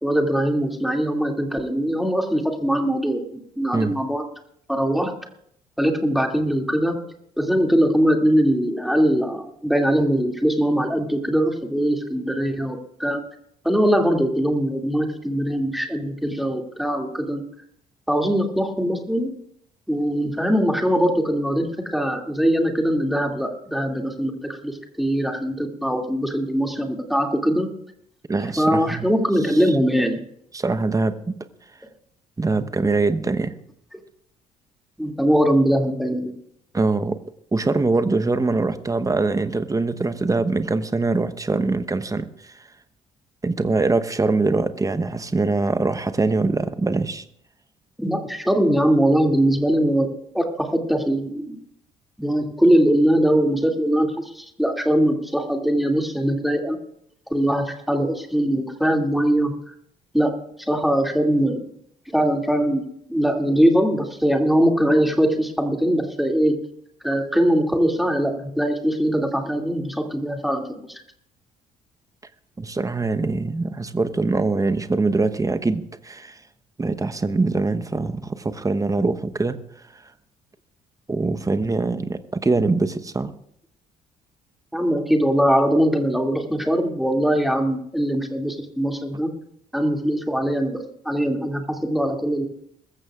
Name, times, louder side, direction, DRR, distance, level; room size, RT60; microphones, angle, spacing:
voice 1, 0.0-4.2 4.7-5.1 5.8-7.0 7.4-13.2 13.6-17.4 18.1-19.3 19.9-27.7 28.6-30.2 35.0-36.3 48.0-50.1 50.3-51.6 52.2-56.8 57.3-59.5 60.1-60.3 60.6-61.6 62.1-62.8 63.1-66.5 67.0-70.6 70.9-71.0 84.7-89.3 89.7-92.5, equal, ahead, 2 dB, 2.5 m, -21 dB
voice 2, 28.3-29.1 29.5-29.6 30.5-31.2 32.4-33.5 36.7-37.2 37.5-42.3 43.4-47.2 72.6-76.4 76.8-79.6 81.1-83.3, right 3 dB, 20° right, 10 dB, 1.0 m, -23 dB
22.0 x 14.5 x 2.5 m, 0.70 s
hypercardioid pair, 50°, 19 cm